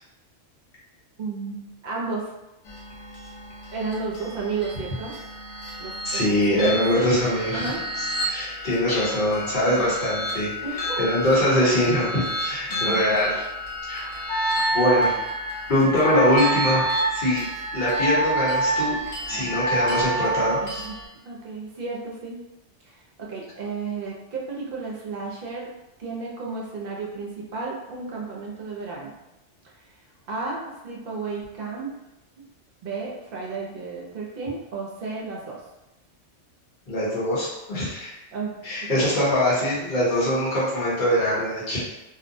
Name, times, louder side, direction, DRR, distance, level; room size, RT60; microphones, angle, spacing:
voice 1, 1.2-2.3 3.7-5.2 5.8-7.2 7.5-7.9 9.6-10.2 10.6-11.1 12.7-13.1 19.3-19.8 20.6-21.0 21.2-22.4 22.8-25.7 26.0-29.1 29.6-30.0 30.3-31.9 32.8-35.6 38.3-39.1 40.2-40.3, right 4 dB, 55° right, -3 dB, 0.7 m, -33 dB
sound 1, 2.6-21.1, equal, 80° left, 1.1 m, -33 dB
voice 2, 6.0-10.6 11.0-13.3 13.9-14.4 14.7-15.1 15.7-17.4 17.7-19.0 19.3-20.8 36.9-38.1 38.6-41.8, left 1 dB, 45° left, -8 dB, 1.0 m, -23 dB
Wind instrument woodwind instrument, 14.3-20.6, right 2 dB, 30° right, 0.3 m, -26 dB
2.5 x 2.1 x 2.6 m, 0.95 s
omnidirectional pair, 1.2 m